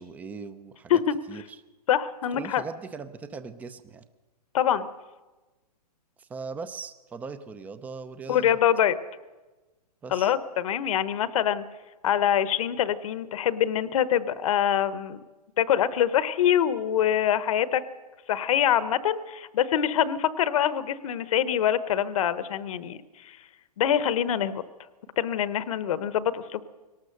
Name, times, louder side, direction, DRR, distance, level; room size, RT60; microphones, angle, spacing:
voice 1, 0.0-1.0 1.3-1.6 2.3-4.1 6.2-8.6 10.0-10.3, right 4 dB, 5° right, 12 dB, 0.5 m, -39 dB
voice 2, 1.9-2.6 4.5-4.9 8.3-9.0 10.1-11.6 12.0-15.2 15.6-17.8 18.3-23.4 23.8-24.6 25.2-26.6, left 10 dB, 55° left, 15 dB, 1.1 m, -24 dB
22.5 x 18.5 x 6.6 m, 1.2 s
hypercardioid pair, 155°, 21 cm